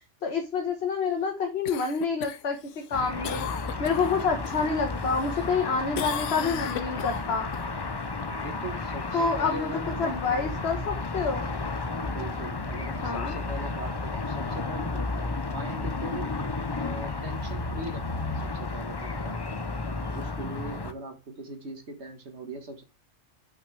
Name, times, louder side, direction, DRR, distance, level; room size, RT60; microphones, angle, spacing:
voice 1, 0.2-2.6 2.9-3.5 3.8-7.5 9.1-9.7 10.0-11.5 13.0-13.3, left 5 dB, 55° left, 3 dB, 1.6 m, -28 dB
Cough, 1.6-4.6 5.0-5.6 5.9-7.6 12.1-12.2, left 9 dB, 75° left, 1.0 m, -36 dB
sound 1, 2.9-20.9, left 3 dB, 25° left, 0.5 m, -33 dB
voice 2, 8.3-10.7 11.9-16.3 16.8-19.4 19.8-22.8, right 1 dB, 60° right, 6 dB, 1.9 m, -40 dB
8.3 x 5.9 x 3.4 m, 0.27 s
omnidirectional pair, 1.3 m